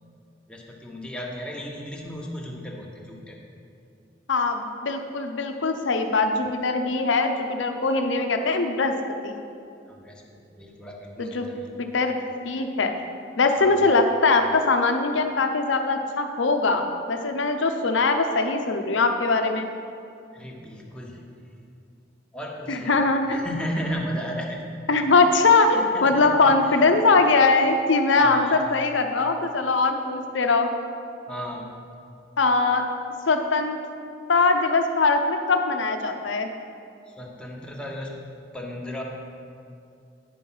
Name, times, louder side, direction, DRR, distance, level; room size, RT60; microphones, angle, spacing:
voice 1, 0.5-3.4 9.9-11.7 13.6-13.8 20.3-21.2 22.3-23.0 23.3-24.7 25.7-26.8 28.1-28.6 31.3-31.8 37.1-38.2 38.5-39.0, equal, 5° left, -2 dB, 1.1 m, -35 dB
voice 2, 4.3-8.9 9.2-9.3 11.2-11.5 11.8-12.2 12.4-12.9 13.4-19.7 22.7-23.4 24.9-30.7 32.4-32.9 33.3-33.8 34.3-36.5, left 3 dB, 90° left, 6 dB, 0.7 m, -21 dB
9.4 x 5.4 x 5.6 m, 2.5 s
head